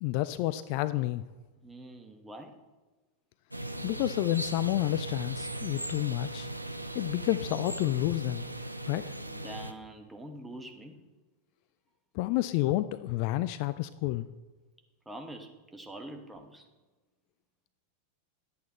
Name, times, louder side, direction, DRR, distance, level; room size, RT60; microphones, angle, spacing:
voice 1, 0.0-1.2 3.8-6.5 6.9-8.5 8.9-9.0 12.1-14.3, left 16 dB, 45° left, 14 dB, 0.3 m, -30 dB
voice 2, 1.6-2.6 9.2-11.0 15.0-16.7, right 1 dB, 5° right, 4 dB, 1.2 m, -45 dB
sound 1, 3.5-9.7, right 1 dB, 85° right, 0.5 m, -38 dB
10.5 x 8.4 x 4.2 m, 1.3 s
figure-of-eight pair, 90°, 0 cm